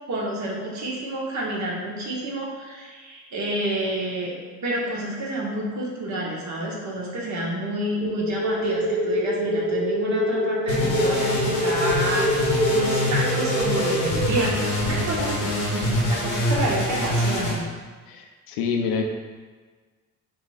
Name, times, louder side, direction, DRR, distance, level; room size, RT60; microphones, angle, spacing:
voice 1, 0.1-12.3 12.7-15.5 16.1-17.6, right 1 dB, 40° right, -3 dB, 1.2 m, -29 dB
sound 1, 8.0-14.4, equal, 85° right, 0.7 m, -25 dB
sound 2, 10.7-17.5, left 1 dB, 80° left, 1.1 m, -25 dB
voice 2, 18.1-19.0, left 6 dB, 55° left, 3 dB, 0.7 m, -27 dB
5.4 x 3.1 x 2.4 m, 1.4 s
figure-of-eight pair, 50°, 43 cm